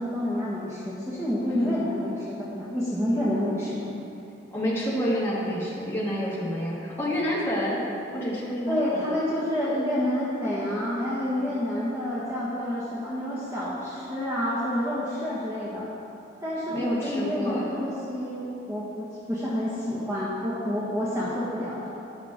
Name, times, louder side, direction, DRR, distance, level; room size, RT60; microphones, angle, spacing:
voice 1, 0.0-3.9 8.6-15.8 16.4-21.9, left 1 dB, 15° right, -8 dB, 1.5 m, -28 dB
voice 2, 1.4-1.8 4.5-7.8 8.1-9.1 16.7-17.6, equal, 15° left, -8 dB, 2.2 m, -28 dB
11.5 x 10.5 x 3.7 m, 2.8 s
head